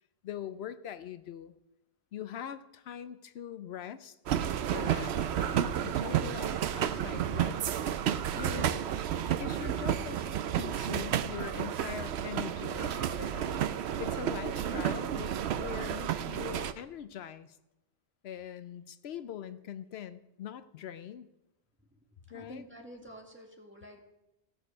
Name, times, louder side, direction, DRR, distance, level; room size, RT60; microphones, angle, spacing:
voice 1, 0.2-1.5 2.1-4.2 4.7-7.6 8.3-8.8 9.3-17.6 18.2-21.3 22.3-22.6, left 9 dB, 80° left, 12 dB, 0.8 m, -42 dB
sound 1, 4.3-16.7, right 9 dB, 90° right, 0.9 m, -31 dB
voice 2, 21.8-24.0, equal, 10° right, 0 dB, 1.9 m, -50 dB
16.5 x 6.5 x 6.0 m, 0.92 s
omnidirectional pair, 1.1 m